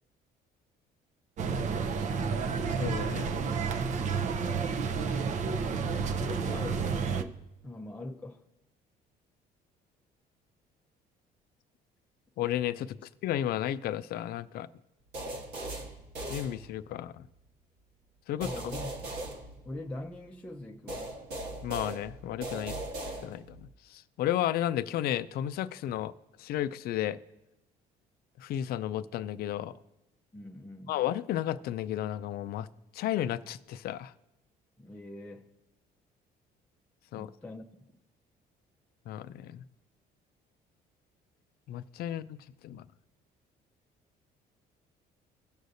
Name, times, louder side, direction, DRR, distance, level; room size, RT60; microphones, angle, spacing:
sound 1, 1.4-7.2, right 5 dB, 45° right, 0.6 m, -30 dB
voice 1, 2.8-3.3 12.4-13.0 13.2-14.7 16.3-17.3 18.3-18.5 21.6-22.8 23.2-26.1 26.4-27.2 28.4-29.7 30.9-32.7 32.9-34.1 37.1-37.3 39.1-39.6 41.7-42.4 42.6-42.9, left 12 dB, 65° left, 0.4 m, -33 dB
voice 2, 6.2-8.4 18.4-18.9 19.7-21.2 30.3-30.9 34.8-35.5 37.2-37.6, left 1 dB, 10° left, 0.6 m, -42 dB
sound 2, 15.1-17.1 18.4-20.2 20.9-23.7, right 1 dB, 75° right, 1.5 m, -39 dB
17.0 x 6.4 x 2.7 m
cardioid pair, 110°, 17 cm